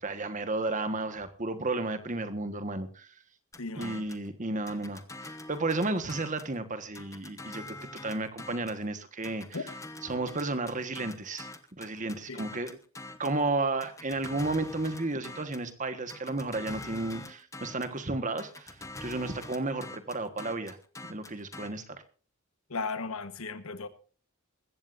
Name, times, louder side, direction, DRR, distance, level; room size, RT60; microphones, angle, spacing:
voice 1, 0.0-3.1 3.7-9.7 10.0-12.8 13.2-20.8 21.1-22.0, right 2 dB, 35° right, 1.4 m, -33 dB
sound 1, 3.5-4.3 4.7-6.6 6.9-8.8 9.2-13.4 13.8-15.7 16.1-18.0 18.4-21.7, left 2 dB, 15° left, 1.0 m, -45 dB
voice 2, 3.6-4.0 9.5-9.6 12.3-12.4 22.7-23.9, left 4 dB, 75° left, 1.2 m, -36 dB
20.5 x 15.5 x 2.6 m
head